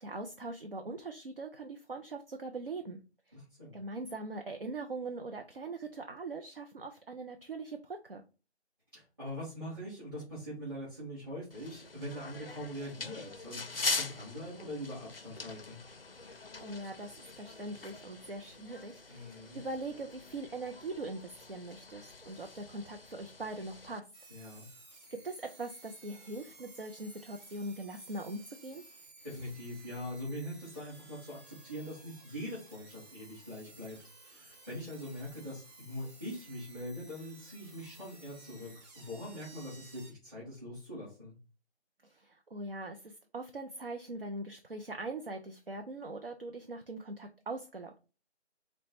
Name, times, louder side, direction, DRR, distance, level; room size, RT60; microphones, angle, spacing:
voice 1, 0.0-3.0 3.3-3.4 3.7-8.2 16.6-24.0 24.3-24.5 25.2-28.8 42.0-48.0, right 2 dB, 55° right, 4 dB, 0.5 m, -41 dB
voice 2, 3.3-3.8 8.9-15.8 19.1-19.6 24.3-24.7 29.2-41.3, equal, 20° right, -13 dB, 2.1 m, -43 dB
sound 1, 11.5-24.0, left 3 dB, 60° left, 0.5 m, -42 dB
sound 2, 24.1-40.1, right 2 dB, 40° right, 2.2 m, -56 dB
4.1 x 2.2 x 4.0 m, 0.32 s
figure-of-eight pair, 180°, 34 cm